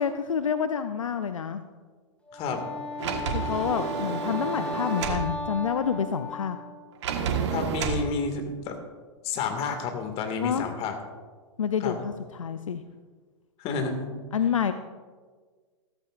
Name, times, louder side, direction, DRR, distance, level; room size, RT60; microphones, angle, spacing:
voice 1, 0.0-1.6 3.3-6.6 10.4-10.7 11.6-12.8 14.3-14.7, left 7 dB, 85° left, 10 dB, 0.6 m, -28 dB
voice 2, 2.3-2.7 7.5-8.8 9.2-10.9 11.8-11.9 13.6-14.1, left 4 dB, 40° left, 5 dB, 2.1 m, -30 dB
Wind instrument woodwind instrument, 2.3-6.9, left 2 dB, 10° left, 2.1 m, -35 dB
Sliding door, 3.0-5.3 7.0-8.1, right 7 dB, 60° right, 1.5 m, -30 dB
15.0 x 14.0 x 2.5 m, 1.5 s
hypercardioid pair, 105°, 16 cm